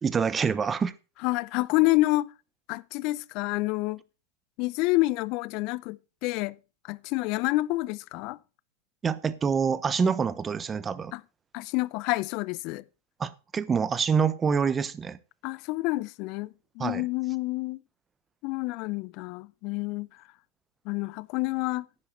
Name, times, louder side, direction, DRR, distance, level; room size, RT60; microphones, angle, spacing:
voice 1, 0.0-0.9 9.0-11.1 13.2-15.2 16.8-17.0, right 6 dB, 20° right, 0.9 m, -26 dB
voice 2, 1.2-2.3 2.7-4.0 4.6-6.6 6.8-8.4 11.1-11.2 11.5-12.8 15.4-17.8 18.4-20.1 20.9-21.9, left 21 dB, 50° left, 0.6 m, -28 dB
10.5 x 9.9 x 4.3 m
hypercardioid pair, 110°, 0 cm